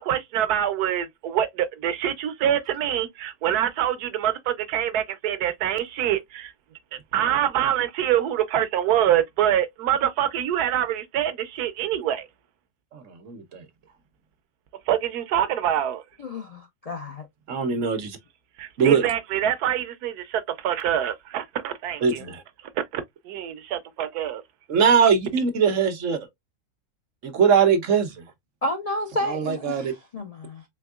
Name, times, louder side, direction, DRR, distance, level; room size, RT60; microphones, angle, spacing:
voice 1, 0.0-6.5 7.1-12.3 14.9-16.0 18.6-22.3 22.8-24.4, right 10 dB, 85° right, 1.2 m, -25 dB
voice 2, 12.9-13.6 17.5-18.2 18.8-19.0 22.0-22.4 24.7-26.2 27.2-28.1 29.3-29.9, right 6 dB, 60° right, 1.2 m, -21 dB
voice 3, 16.2-17.3 28.6-30.6, left 1 dB, 50° left, 0.4 m, -31 dB
4.5 x 3.4 x 2.3 m
omnidirectional pair, 1.6 m